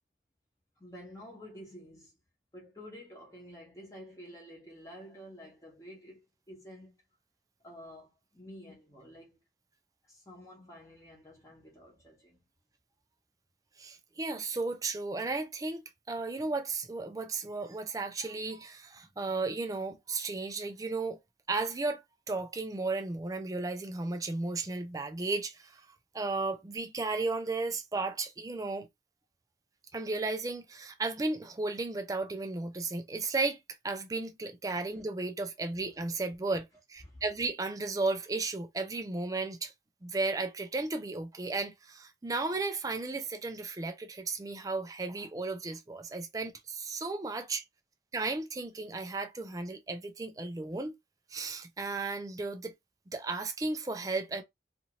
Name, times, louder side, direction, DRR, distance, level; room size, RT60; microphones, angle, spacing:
voice 1, 0.8-2.2 2.5-7.0 7.6-9.4 10.1-12.4 37.0-37.2, equal, 20° left, 0.9 m, -50 dB
voice 2, 13.8-21.2 21.5-22.0 22.3-25.9 26.1-28.9 29.9-33.6 33.8-39.7 40.0-47.6 48.1-50.9 51.3-52.7 53.1-54.4, right 3 dB, 20° right, 0.4 m, -34 dB
2.7 x 2.5 x 2.9 m
head